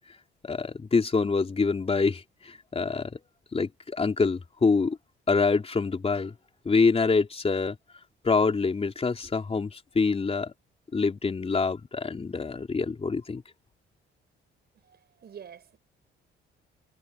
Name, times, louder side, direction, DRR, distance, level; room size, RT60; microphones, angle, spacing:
voice 1, 0.4-3.1 3.5-5.0 5.3-6.3 6.7-7.8 8.2-10.5 10.9-13.4, left 4 dB, 30° left, 3.7 m, -26 dB
voice 2, 14.7-15.8, right 8 dB, 55° right, 6.5 m, -47 dB
cardioid pair, 90°, 20 cm